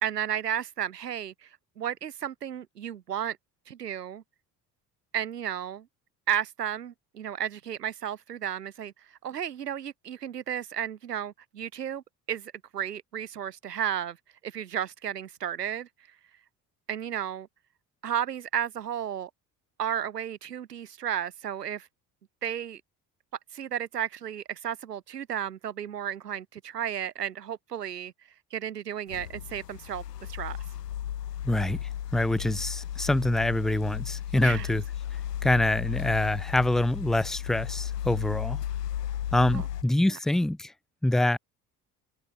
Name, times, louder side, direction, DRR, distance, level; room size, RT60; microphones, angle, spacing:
voice 1, 0.0-1.5 1.8-3.4 3.7-4.2 5.1-5.9 6.3-8.9 9.2-12.0 12.3-14.2 14.4-15.9 16.9-17.5 18.0-19.3 19.8-21.9 22.4-22.8 23.5-28.1 28.5-30.6 34.4-34.7 39.5-39.6, right 9 dB, 80° right, 0.9 m, -33 dB
sound 1, 29.1-39.8, left 11 dB, 80° left, 1.1 m, -34 dB
voice 2, 31.4-34.8 35.4-38.6 39.3-40.7 41.0-41.4, left 1 dB, ahead, 0.3 m, -25 dB
figure-of-eight pair, 55°, 47 cm